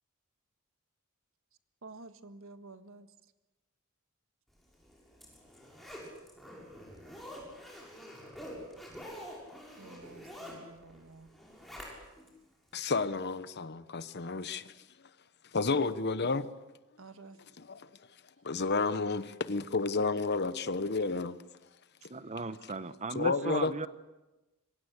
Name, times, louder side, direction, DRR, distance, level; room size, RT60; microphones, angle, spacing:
voice 1, 1.8-3.1 9.8-11.3 17.0-17.4, right 3 dB, 70° right, 1.6 m, -51 dB
Zipper (clothing), 4.7-12.3 12.7-12.8, equal, ahead, 6.7 m, -47 dB
voice 2, 12.7-14.7 15.5-16.5 17.6-17.9 18.4-21.4 23.1-23.9, left 3 dB, 50° left, 1.1 m, -31 dB
voice 3, 22.1-23.9, right 3 dB, 35° right, 1.0 m, -36 dB
26.0 x 23.5 x 8.3 m
head